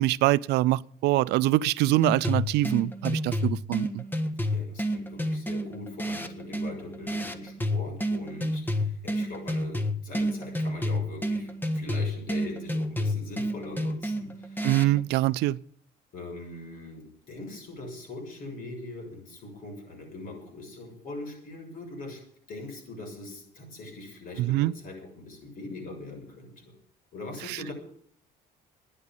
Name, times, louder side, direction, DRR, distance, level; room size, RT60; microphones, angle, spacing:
voice 1, 0.0-4.0 14.6-15.6 24.4-24.7 27.5-27.6, right 16 dB, 85° right, 0.5 m, -24 dB
sound 1, 2.0-15.0, equal, 10° left, 1.5 m, -30 dB
voice 2, 4.5-14.6 16.1-22.2 22.5-26.7 27.1-27.7, left 2 dB, 55° left, 6.8 m, -41 dB
12.0 x 10.0 x 9.0 m
cardioid pair, 110°, 17 cm